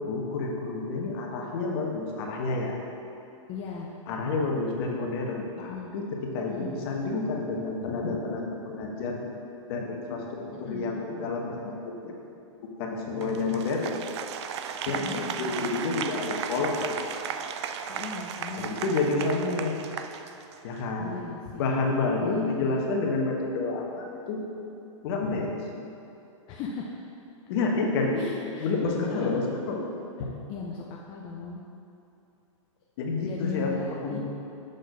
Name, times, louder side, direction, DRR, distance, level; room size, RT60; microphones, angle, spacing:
voice 1, 0.0-2.8 4.1-9.3 9.7-12.1 12.8-13.9 14.9-16.9 18.6-19.8 20.6-21.1 21.6-24.4 25.0-25.5 27.5-29.8 33.0-34.2, left 3 dB, 50° left, 0 dB, 1.0 m, -29 dB
voice 2, 3.5-3.9 5.6-6.0 6.5-6.8 10.5-10.9 14.9-15.6 17.9-18.7 21.0-21.7 22.2-22.8 26.5-27.0 28.2-28.7 29.1-29.4 30.2-31.6 33.2-34.2, left 5 dB, 30° left, -2 dB, 0.5 m, -38 dB
Applause, 13.2-20.8, right 8 dB, 55° right, 0.4 m, -35 dB
6.6 x 4.0 x 5.1 m, 2.8 s
hypercardioid pair, 135°, 17 cm